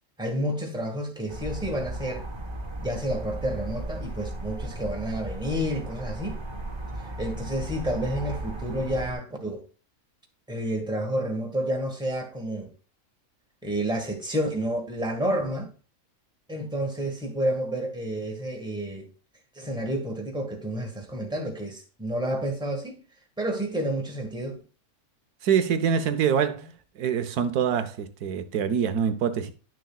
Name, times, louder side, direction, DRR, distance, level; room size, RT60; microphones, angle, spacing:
voice 1, 0.2-2.3 2.8-6.4 7.0-9.6 10.5-12.7 13.6-15.7 16.5-19.1 19.5-23.0 23.4-24.6, right 1 dB, 5° right, 1.4 m, -30 dB
sound 1, 1.3-9.1, right 2 dB, 20° right, 0.9 m, -35 dB
voice 2, 25.4-26.7 27.0-29.5, right 7 dB, 85° right, 1.3 m, -25 dB
10.0 x 6.4 x 2.3 m
omnidirectional pair, 1.6 m